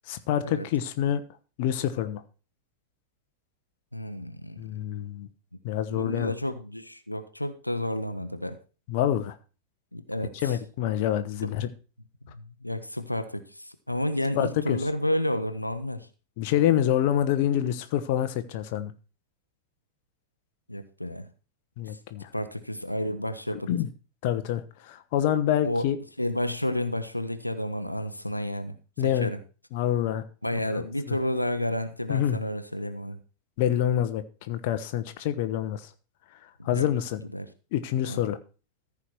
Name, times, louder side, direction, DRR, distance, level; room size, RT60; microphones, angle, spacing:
voice 1, 0.1-1.2 1.6-2.2 4.6-5.3 5.6-6.3 8.9-9.4 10.4-11.7 14.4-14.8 16.4-18.9 21.8-22.3 23.7-23.9 24.2-26.0 29.0-29.3 29.7-30.2 30.7-31.2 32.1-32.4 33.6-35.9 36.6-37.2 37.7-38.4, left 11 dB, 50° left, 0.9 m, -26 dB
voice 2, 3.9-4.6 5.9-8.6 9.9-10.6 11.4-11.5 12.3-16.1 20.7-21.3 22.3-23.7 25.6-25.9 26.2-29.4 30.4-33.2 36.6-36.9 37.3-37.5 38.1-38.2, left 1 dB, 85° left, 0.8 m, -31 dB
14.0 x 4.9 x 5.9 m
figure-of-eight pair, 90°, 0 cm